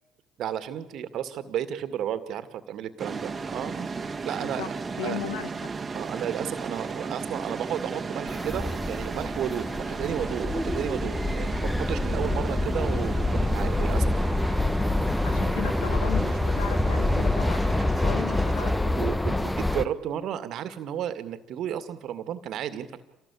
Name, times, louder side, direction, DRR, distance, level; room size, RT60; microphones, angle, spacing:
voice 1, 0.4-3.9 4.2-4.8 5.0-5.2 5.9-14.2 17.1-17.3 18.6-23.0, right 10 dB, 60° right, 12 dB, 2.1 m, -33 dB
sound 1, 3.0-18.7, right 4 dB, 30° right, 1.9 m, -35 dB
voice 2, 5.0-5.7 15.2-19.1, left 10 dB, 85° left, 11 dB, 1.9 m, -37 dB
sound 2, 8.3-19.8, left 2 dB, 10° left, 1.3 m, -26 dB
27.0 x 18.5 x 8.5 m, 0.97 s
hypercardioid pair, 65°, 0 cm